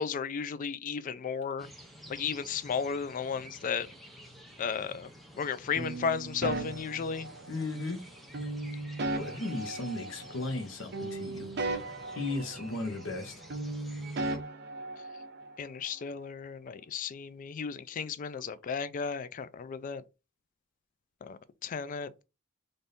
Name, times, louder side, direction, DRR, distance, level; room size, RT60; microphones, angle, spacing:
voice 1, 0.0-1.7 2.1-3.9 4.6-5.1 5.4-7.3 15.6-20.0 21.2-22.2, left 6 dB, 40° left, 0.3 m, -34 dB
sound 1, 1.6-14.4, equal, ahead, 0.7 m, -51 dB
sound 2, 5.8-7.7 8.3-10.6 10.9-13.2 13.5-15.6, right 2 dB, 55° right, 0.7 m, -37 dB
voice 2, 7.5-8.0 9.2-11.5 12.2-13.3, left 2 dB, 75° left, 0.9 m, -35 dB
3.4 x 2.6 x 4.0 m
head